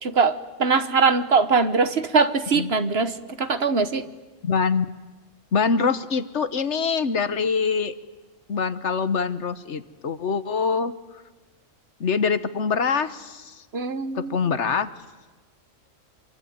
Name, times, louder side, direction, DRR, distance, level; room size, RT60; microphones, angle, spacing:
voice 1, 0.0-4.1 13.7-14.4, right 4 dB, 50° right, 11 dB, 1.4 m, -22 dB
voice 2, 4.4-4.8 5.5-7.9 8.5-10.9 12.0-13.6 14.1-14.9, left 5 dB, 60° left, 13 dB, 1.4 m, -24 dB
27.0 x 23.0 x 9.5 m, 1.3 s
omnidirectional pair, 1.4 m